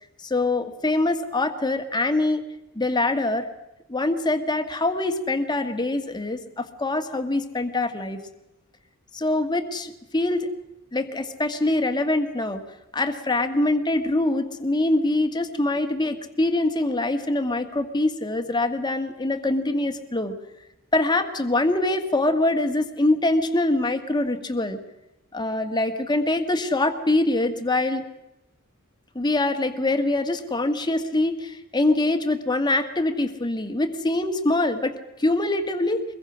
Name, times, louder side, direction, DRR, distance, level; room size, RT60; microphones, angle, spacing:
voice 1, 0.2-2.4 2.7-3.5 3.9-8.2 9.1-10.5 10.9-12.6 12.9-20.3 20.9-24.8 25.3-28.0 29.1-36.0, left 2 dB, 20° left, 6 dB, 1.7 m, -24 dB
23.5 x 22.0 x 6.3 m, 0.93 s
head